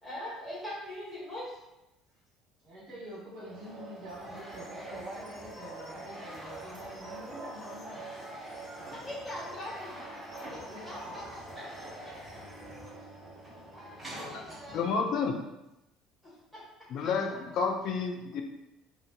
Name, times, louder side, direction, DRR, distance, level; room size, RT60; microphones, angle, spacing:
voice 1, 0.0-1.6 8.9-10.0 10.3-11.7 12.0-12.4 13.7-14.9 16.2-16.6 17.0-17.4, equal, 5° left, -8 dB, 1.3 m, -42 dB
voice 2, 2.6-9.1 10.7-11.0, right 1 dB, 50° right, -7 dB, 1.1 m, -46 dB
sound 1, 3.3-15.0, right 2 dB, 15° right, 0.9 m, -46 dB
sound 2, 4.1-12.9, equal, 25° left, 1.0 m, -48 dB
voice 3, 14.7-15.4 16.9-18.4, left 5 dB, 50° left, 4 dB, 0.3 m, -30 dB
2.4 x 2.4 x 2.2 m, 0.93 s
figure-of-eight pair, 60°, 0 cm